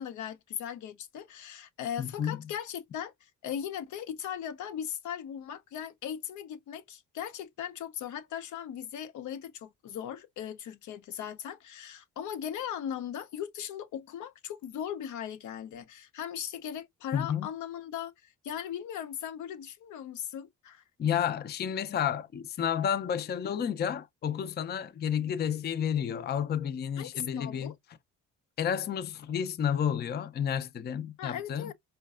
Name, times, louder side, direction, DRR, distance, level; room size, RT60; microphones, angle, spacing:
voice 1, 0.0-20.8 27.0-27.7 31.2-31.7, left 9 dB, 75° left, 0.6 m, -38 dB
voice 2, 2.0-2.4 17.1-17.5 21.0-27.7 28.6-31.7, left 8 dB, 35° left, 0.4 m, -31 dB
4.5 x 2.2 x 2.4 m
cardioid pair, 90°, 30 cm